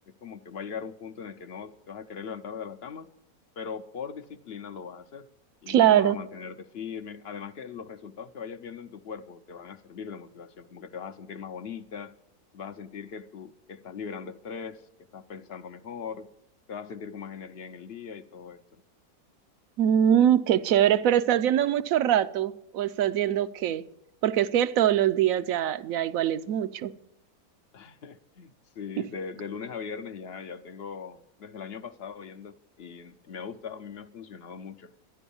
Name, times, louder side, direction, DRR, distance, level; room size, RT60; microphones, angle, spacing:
voice 1, 0.1-3.1 3.6-5.3 5.6-12.1 12.5-16.3 16.7-18.6 27.7-34.9, left 6 dB, 55° left, 0.7 m, -40 dB
voice 2, 5.7-6.2 19.8-23.8 24.2-26.9 29.0-29.1, right 10 dB, 65° right, 1.0 m, -23 dB
12.5 x 11.0 x 7.0 m
omnidirectional pair, 1.6 m